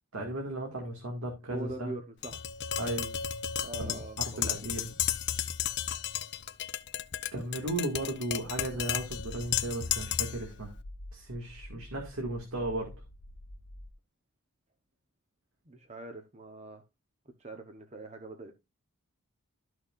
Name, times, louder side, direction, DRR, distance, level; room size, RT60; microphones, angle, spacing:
voice 1, 0.1-1.9 2.8-3.1 3.8-4.0 4.2-4.9 7.3-10.7 11.1-13.0, right 1 dB, 75° right, 2.2 m, -35 dB
voice 2, 1.5-2.5 3.6-4.8 15.7-16.8 17.4-18.5, right 2 dB, 30° right, 0.9 m, -43 dB
Tap, 2.2-10.5, left 10 dB, 50° left, 0.6 m, -34 dB
sound 1, 8.4-13.9, left 1 dB, 70° left, 1.0 m, -48 dB
13.0 x 6.3 x 2.5 m
head